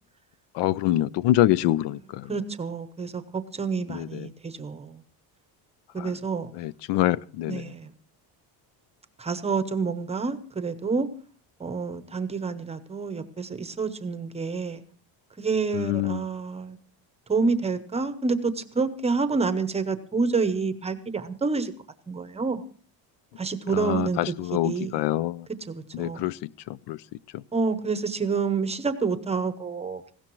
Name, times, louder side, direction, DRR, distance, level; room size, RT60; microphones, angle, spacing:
voice 1, 0.5-2.3 3.9-4.3 6.0-6.1 6.5-7.7 15.7-16.2 23.7-25.5 25.9-27.0 27.3-27.4, left 14 dB, 75° left, 20 dB, 0.6 m, -26 dB
voice 2, 2.3-5.0 5.9-6.5 7.5-7.9 9.2-11.1 11.6-14.8 15.4-16.8 17.3-21.7 22.1-22.6 23.4-24.2 24.6-25.0 25.7-26.3 27.5-30.1, right 4 dB, 15° right, 10 dB, 0.8 m, -28 dB
19.0 x 16.5 x 3.1 m, 0.43 s
cardioid pair, 170°, 42 cm